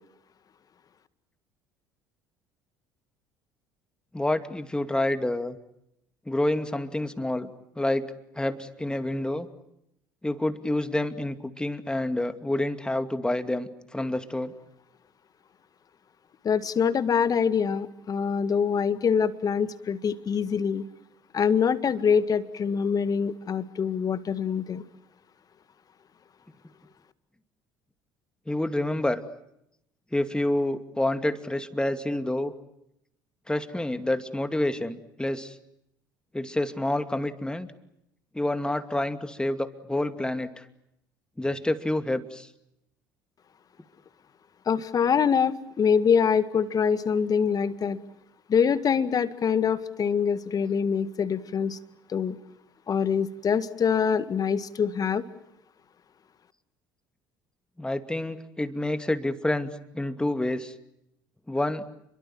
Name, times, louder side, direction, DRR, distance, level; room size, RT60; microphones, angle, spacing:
voice 1, 4.1-5.6 6.3-7.5 7.8-9.5 10.2-14.5 28.5-29.2 30.1-32.5 33.5-35.6 36.3-37.7 38.3-40.6 41.4-42.5 57.8-59.7 59.9-60.7 61.5-61.8, left 1 dB, 10° left, 9 dB, 2.5 m, -28 dB
voice 2, 16.4-20.9 21.3-24.8 44.7-48.0 48.5-51.8 52.1-52.4 52.9-55.2, left 6 dB, 35° left, 13 dB, 1.9 m, -24 dB
30.0 x 23.0 x 7.8 m, 0.81 s
figure-of-eight pair, 60°, 10 cm